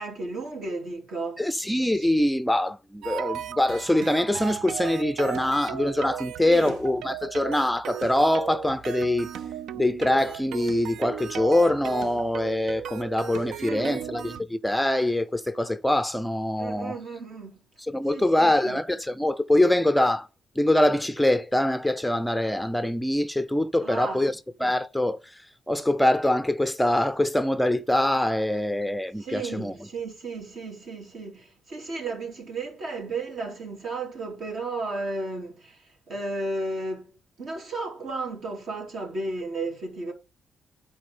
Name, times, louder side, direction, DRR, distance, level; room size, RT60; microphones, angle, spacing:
voice 1, 0.0-1.5 1.9-2.1 6.5-6.8 13.6-14.0 16.6-17.6 18.1-18.8 23.8-24.2 29.2-37.1 37.4-40.1, right 3 dB, 60° right, 3.1 m, -34 dB
voice 2, 1.4-9.3 9.7-17.0 17.8-20.3 20.6-29.7, left 1 dB, 5° left, 0.5 m, -24 dB
sound 1, 3.0-14.4, right 9 dB, 80° right, 0.5 m, -36 dB
8.8 x 4.4 x 5.4 m
cardioid pair, 90°, 0 cm